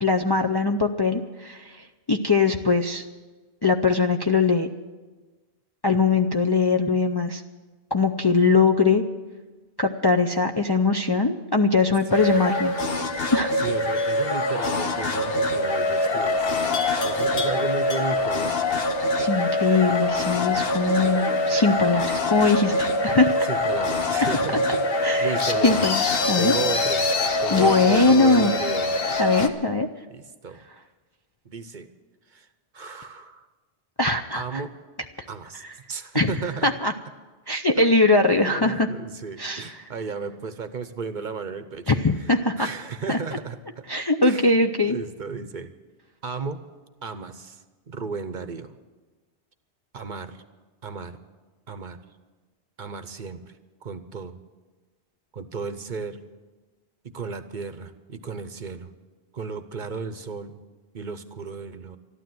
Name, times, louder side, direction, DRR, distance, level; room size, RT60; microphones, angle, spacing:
voice 1, 0.0-3.0 3.6-4.7 5.8-7.4 7.9-9.0 9.8-12.7 13.3-13.5 19.2-23.5 25.0-25.4 25.6-26.5 27.5-28.5 29.2-29.9 34.0-34.6 36.1-36.3 36.6-36.9 37.5-38.9 39.4-39.7 41.9-42.7 43.1-43.2 43.9-45.0, left 3 dB, 30° left, 4 dB, 0.4 m, -21 dB
sound 1, 12.1-29.5, left 2 dB, 60° left, 1.2 m, -24 dB
voice 2, 12.1-12.4 13.6-16.5 17.0-18.6 23.4-24.9 25.2-25.9 26.4-27.1 27.4-28.9 30.1-30.6 31.4-31.9 32.3-32.5 32.7-33.5 34.3-34.7 35.3-35.6 35.9-36.7 37.8-37.9 38.4-42.0 42.6-43.8 44.2-44.5 44.9-45.7 46.2-46.6 47.0-48.7 49.9-50.4 50.8-51.2 51.7-52.0 52.8-53.5 53.8-54.4 55.3-56.2 57.0-58.9 59.3-60.6 60.9-62.0, right 5 dB, 50° right, 10 dB, 0.9 m, -34 dB
Livestock farm animals working animals, 14.0-14.3 16.7-18.4, left 3 dB, 80° left, 1.7 m, -35 dB
13.5 x 12.0 x 7.7 m, 1.3 s
omnidirectional pair, 1.1 m